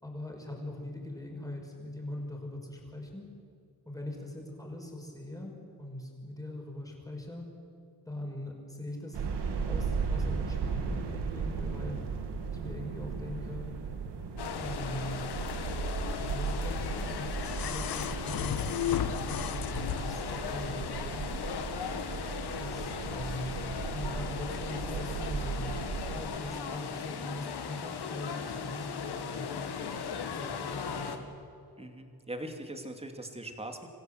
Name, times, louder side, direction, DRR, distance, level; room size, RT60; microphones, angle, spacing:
voice 1, 0.0-3.3 3.9-7.5 8.1-12.0 12.5-13.7 14.6-15.2 16.2-21.3 22.6-23.6 23.9-25.8 26.1-29.6 30.3-31.2, left 1 dB, 10° left, 0 dB, 5.7 m, -41 dB
sound 1, 9.1-26.2, right 5 dB, 85° right, 2.4 m, -36 dB
sound 2, 14.4-31.2, left 6 dB, 75° left, 2.0 m, -38 dB
sound 3, 16.6-20.4 21.6-21.7, left 11 dB, 60° left, 0.9 m, -35 dB
voice 2, 31.8-33.9, right 1 dB, 15° right, 5 dB, 2.6 m, -41 dB
26.0 x 15.5 x 8.1 m, 2.5 s
cardioid pair, 100°, 39 cm